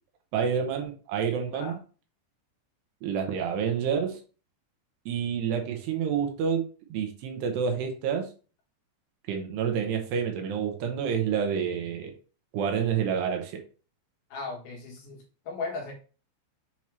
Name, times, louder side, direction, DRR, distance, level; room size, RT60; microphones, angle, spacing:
voice 1, 0.3-1.8 3.0-4.2 5.1-6.6 6.9-8.3 9.3-12.1 12.5-13.6, right 7 dB, 80° right, 4 dB, 2.8 m, -28 dB
voice 2, 14.3-15.9, left 4 dB, 65° left, 0 dB, 2.7 m, -37 dB
7.2 x 2.9 x 4.6 m, 0.36 s
omnidirectional pair, 5.2 m